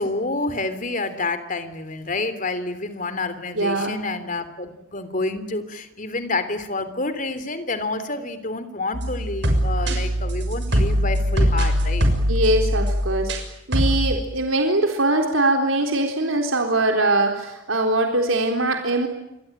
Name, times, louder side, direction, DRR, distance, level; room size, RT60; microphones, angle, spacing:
voice 1, 0.0-12.1, left 2 dB, 40° left, 12 dB, 3.2 m, -28 dB
voice 2, 3.5-3.9 12.3-13.3 13.7-19.1, right 2 dB, 85° right, 3 dB, 3.8 m, -22 dB
sound 1, 8.9-13.4 13.7-14.2, equal, 60° right, 6.4 m, -21 dB
28.5 x 23.0 x 9.1 m, 0.85 s
head